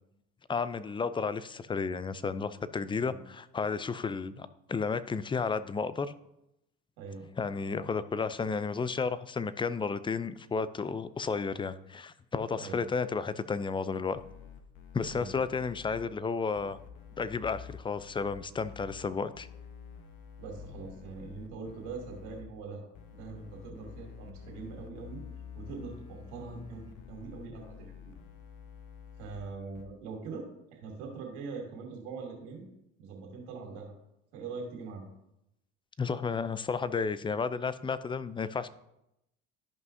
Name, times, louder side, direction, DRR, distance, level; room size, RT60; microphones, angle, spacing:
voice 1, 0.5-6.1 7.4-14.2 14.9-16.8 17.2-19.5 36.0-38.7, left 5 dB, 15° left, 14 dB, 0.4 m, -32 dB
voice 2, 7.0-7.3 12.6-12.8 15.1-15.3 20.4-25.2 25.5-27.9 29.2-32.7 33.0-33.9 34.3-35.0, right 4 dB, 70° right, 0 dB, 2.8 m, -42 dB
sound 1, 14.1-16.0 16.5-19.0 19.3-22.4 22.9-29.4 29.7-29.8, left 7 dB, 55° left, 1.4 m, -49 dB
13.5 x 5.5 x 2.7 m, 0.84 s
hypercardioid pair, 70°, 36 cm